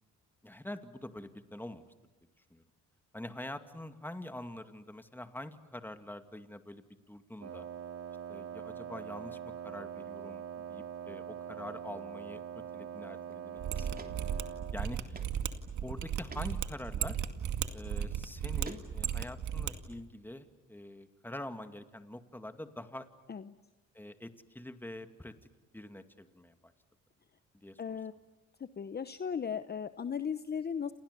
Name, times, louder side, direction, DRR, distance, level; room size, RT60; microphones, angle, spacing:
voice 1, 0.4-1.9 2.5-2.6 3.1-7.7 8.3-13.9 14.2-14.3 14.7-15.3 15.8-17.2 17.7-23.1 23.9-25.3 25.7-26.6 27.5-28.0, left 1 dB, 5° left, 8 dB, 2.3 m, -45 dB
Wind instrument woodwind instrument, 7.4-14.8, right 8 dB, 55° right, 2.3 m, -43 dB
sound 1, 13.3-13.4 13.9-14.1 14.4-14.5 15.1-15.3 15.7-15.8 16.3-16.5 17.6-17.8 18.3-19.2, right 3 dB, 30° right, 3.2 m, -47 dB
Mechanisms, 13.6-19.7 20.0-20.1, right 9 dB, 70° right, 2.2 m, -35 dB
voice 2, 27.8-28.1 28.6-30.9, left 7 dB, 35° left, 12 dB, 0.9 m, -36 dB
29.5 x 28.0 x 6.9 m, 1.1 s
cardioid pair, 90°, 30 cm